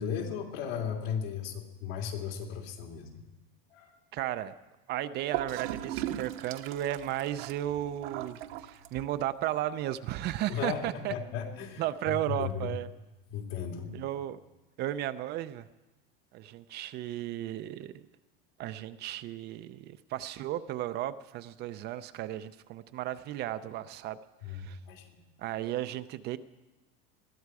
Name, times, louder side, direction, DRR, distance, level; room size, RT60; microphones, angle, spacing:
voice 1, 0.0-3.2 3.7-4.0 10.5-12.7 13.3-13.9 24.4-25.2, left 7 dB, 75° left, 1 dB, 3.4 m, -36 dB
voice 2, 4.1-4.5 4.9-11.1 11.8-12.9 13.9-14.4 14.8-15.7 16.3-18.0 18.6-24.2 24.5-24.8 25.4-26.4, right 13 dB, 35° right, 12 dB, 0.5 m, -34 dB
Gurgling / Toilet flush, 5.3-9.3, right 12 dB, 70° right, 1.1 m, -38 dB
21.0 x 14.0 x 4.8 m, 1.1 s
supercardioid pair, 150°, 30 cm